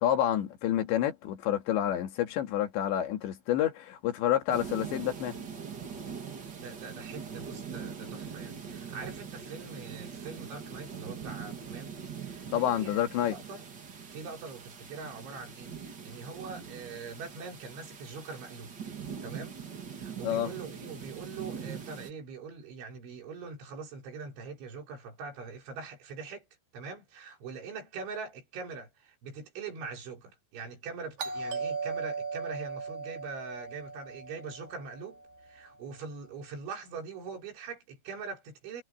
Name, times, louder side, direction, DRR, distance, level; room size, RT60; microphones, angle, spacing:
voice 1, 0.0-5.4 12.5-13.4 20.2-20.5, left 11 dB, 75° left, 4.3 m, -28 dB
sound 1, 4.5-22.1, right 6 dB, 40° right, 1.6 m, -42 dB
voice 2, 6.6-13.6 14.1-18.8 19.2-19.6 19.9-26.5 26.7-38.8, right 5 dB, 85° right, 7.7 m, -43 dB
Doorbell, 31.2-35.8, right 4 dB, 55° right, 3.5 m, -38 dB
omnidirectional pair, 5.2 m